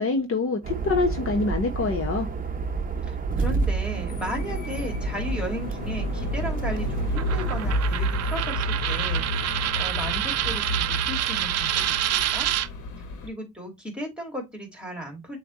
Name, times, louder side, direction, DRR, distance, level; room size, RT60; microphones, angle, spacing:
voice 1, 0.0-2.3, left 3 dB, 45° left, 1.1 m, -25 dB
sound 1, 0.6-7.8, right 4 dB, 30° right, 0.8 m, -29 dB
voice 2, 3.1-12.5 13.2-15.4, equal, 5° right, 2.1 m, -35 dB
sound 2, 4.1-13.3, left 1 dB, 80° left, 1.0 m, -31 dB
Coin (dropping), 7.2-12.7, right 12 dB, 60° right, 0.5 m, -27 dB
7.0 x 2.4 x 3.0 m
cardioid pair, 90°, 30 cm